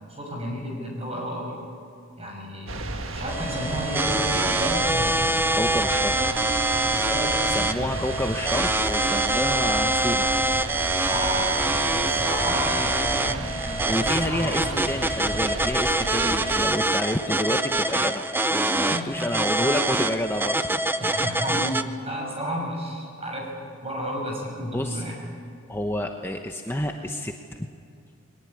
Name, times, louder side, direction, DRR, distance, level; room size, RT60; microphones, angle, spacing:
voice 1, 0.1-1.6 2.2-5.4 6.8-7.9 11.0-14.8 18.8-19.2 21.0-23.5 23.8-25.1, equal, 30° right, 0 dB, 6.9 m, -32 dB
sound 1, 2.7-16.7, right 2 dB, 70° right, 1.6 m, -33 dB
sound 2, 3.3-21.8, right 2 dB, 10° right, 0.7 m, -25 dB
voice 2, 5.5-6.4 7.5-10.3 13.9-20.8 24.7-25.0 25.7-27.7, left 1 dB, 10° left, 3 dB, 1.0 m, -29 dB
22.0 x 19.0 x 9.6 m, 2.5 s
head